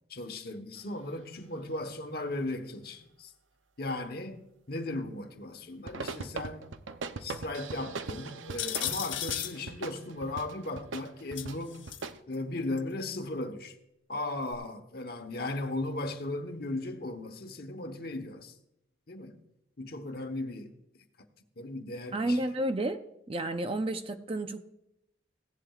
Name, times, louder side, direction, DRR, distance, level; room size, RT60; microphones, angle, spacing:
voice 1, 0.1-3.3 3.8-6.7 7.2-11.8 12.3-13.7 14.1-18.5 19.1-19.4 19.8-20.7 21.6-22.4, left 2 dB, 55° left, 1.1 m, -37 dB
sound 1, 5.8-12.2, right 4 dB, 85° right, 0.6 m, -40 dB
sound 2, 8.6-9.6 11.4-12.0 12.8-12.9 14.5-14.6, left 12 dB, 85° left, 1.0 m, -34 dB
voice 2, 22.1-23.0 23.3-24.6, right 1 dB, 30° right, 0.6 m, -31 dB
16.5 x 11.0 x 2.4 m
head